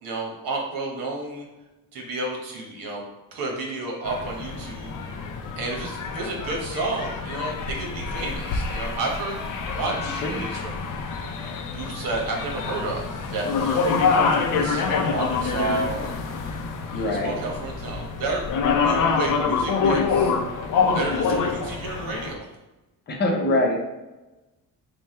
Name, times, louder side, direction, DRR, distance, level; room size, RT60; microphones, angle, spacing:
voice 1, 0.0-1.5 1.9-3.0 3.3-4.9 5.6-9.4 9.7-10.8 11.7-16.1 16.9-18.4 18.8-20.3 20.9-22.5, right 3 dB, 75° right, 0 dB, 1.1 m, -31 dB
sound 1, 4.0-22.3, left 5 dB, 60° left, 0.6 m, -26 dB
voice 2, 9.9-10.4 16.9-17.4 23.1-23.8, left 1 dB, 30° left, -2 dB, 0.7 m, -24 dB
3.3 x 2.3 x 4.3 m, 1.1 s
cardioid pair, 155°, 35 cm